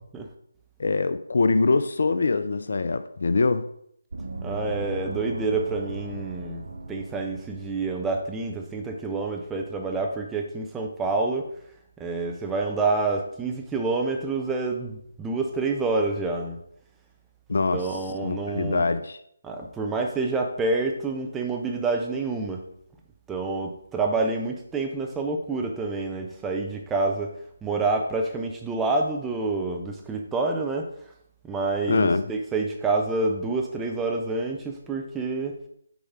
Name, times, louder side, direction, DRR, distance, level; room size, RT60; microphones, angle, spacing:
voice 1, 0.8-3.7 17.5-19.2 31.9-32.3, left 3 dB, 55° left, 0.4 m, -24 dB
Gong, 4.1-9.4, right 2 dB, 65° right, 0.8 m, -38 dB
voice 2, 4.4-11.5 12.0-16.6 17.7-18.9 19.4-22.6 23.3-27.3 27.6-30.9 31.4-35.6, right 3 dB, 10° right, 0.6 m, -28 dB
7.0 x 4.8 x 3.6 m
figure-of-eight pair, 150°, 0 cm